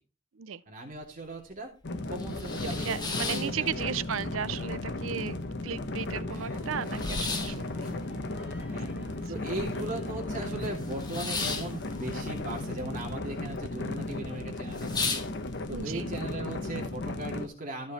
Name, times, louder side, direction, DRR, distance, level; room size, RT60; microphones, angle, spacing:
voice 1, 0.7-1.7 2.1-4.0 6.3-6.6 8.7-8.9 9.3-15.1 15.7-17.9, right 2 dB, 40° right, 2.7 m, -38 dB
sound 1, 1.0-1.1 1.5-1.6 2.0-4.2 4.5-5.2 5.6-5.7 5.9-10.0 10.3-13.1 13.4-13.9 14.3-14.4 14.7-15.8, left 4 dB, 20° left, 2.0 m, -36 dB
sound 2, 1.8-17.5, left 2 dB, 60° left, 1.1 m, -35 dB
voice 2, 2.8-5.4 5.6-7.9 9.0-9.3 13.2-13.4 15.7-16.1, right 7 dB, 80° right, 0.6 m, -35 dB
Crowd, 6.3-13.1, equal, 5° right, 3.0 m, -54 dB
14.5 x 5.3 x 4.3 m
head